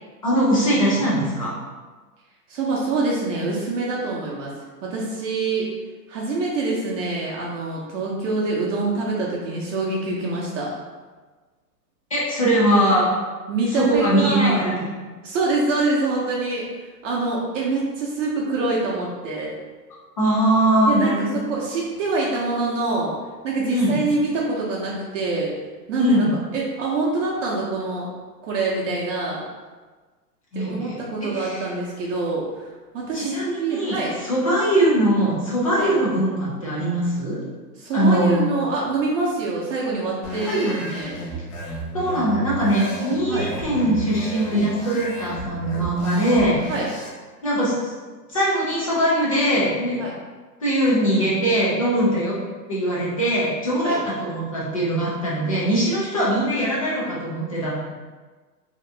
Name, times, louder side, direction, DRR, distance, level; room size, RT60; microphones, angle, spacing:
voice 1, 0.2-1.5 12.1-13.0 13.7-14.7 20.2-21.4 23.7-24.0 26.0-26.3 30.5-31.0 31.2-31.6 33.1-34.0 34.2-37.4 37.9-38.4 40.5-40.8 41.9-46.6 47.4-47.9 48.3-50.0 50.6-52.4 52.7-57.7, right 1 dB, 25° left, -7 dB, 0.3 m, -21 dB
voice 2, 2.5-4.5 4.8-5.7 6.1-10.7 13.5-14.7 15.2-16.7 17.0-19.5 20.9-23.1 23.4-25.5 25.9-26.3 26.5-28.1 28.4-29.4 30.5-32.7 32.9-34.1 35.8-35.9 37.8-40.6 40.9-41.2 43.3-43.5 46.7-46.9 50.0-50.1 53.8-54.0, right 3 dB, 50° right, -5 dB, 0.7 m, -25 dB
sound 1, 40.2-47.1, equal, 50° left, 0.9 m, -33 dB
2.8 x 2.4 x 3.2 m, 1.3 s
hypercardioid pair, 140°, 49 cm